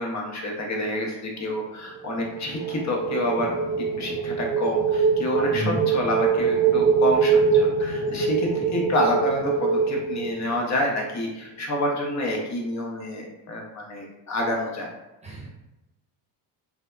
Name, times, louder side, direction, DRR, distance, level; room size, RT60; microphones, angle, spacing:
voice 1, 0.0-3.6 4.0-14.9, left 1 dB, 35° left, 0 dB, 0.8 m, -28 dB
sound 1, 1.9-10.8, right 5 dB, 45° right, 0.5 m, -23 dB
voice 2, 5.5-5.8 15.2-15.5, equal, 15° right, -3 dB, 0.8 m, -30 dB
2.7 x 2.1 x 2.2 m, 0.98 s
supercardioid pair, 80°, 50 cm